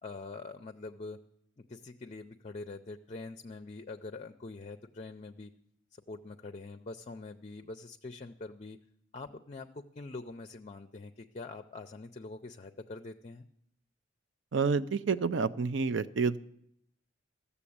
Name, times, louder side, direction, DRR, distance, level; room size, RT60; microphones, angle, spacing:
voice 1, 0.0-1.2 1.6-5.5 6.1-8.8 9.1-13.4, left 3 dB, 35° left, 7 dB, 0.5 m, -44 dB
voice 2, 14.5-16.4, right 5 dB, 70° right, 15 dB, 0.5 m, -29 dB
14.5 x 7.0 x 8.5 m, 0.73 s
head